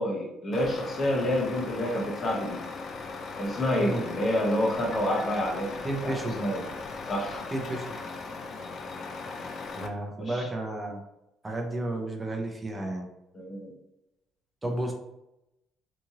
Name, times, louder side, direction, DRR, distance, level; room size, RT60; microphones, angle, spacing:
voice 1, 0.0-2.6 3.4-6.6 7.1-7.4 10.2-10.5 13.3-13.7, left 1 dB, 30° left, 0 dB, 0.9 m, -28 dB
Truck, 0.5-9.9, left 4 dB, 50° left, 0.4 m, -38 dB
voice 2, 3.8-4.1 5.8-6.4 7.5-7.8 9.8-11.0 11.4-13.1 14.6-14.9, right 1 dB, 15° right, 2 dB, 0.6 m, -32 dB
2.9 x 2.5 x 2.7 m, 0.89 s
cardioid pair, 105°, 0 cm